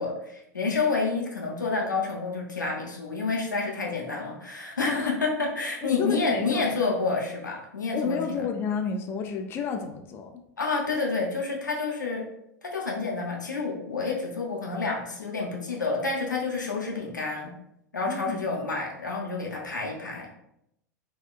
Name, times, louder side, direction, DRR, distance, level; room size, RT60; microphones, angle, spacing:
voice 1, 0.0-8.5 10.6-12.2 12.6-17.5 17.9-20.3, left 4 dB, 85° left, -1 dB, 0.6 m, -29 dB
voice 2, 4.8-5.1 5.8-6.9 7.9-10.4 18.1-18.4, left 5 dB, 25° left, 4 dB, 0.3 m, -30 dB
3.7 x 2.2 x 2.3 m, 0.78 s
figure-of-eight pair, 90°, 10 cm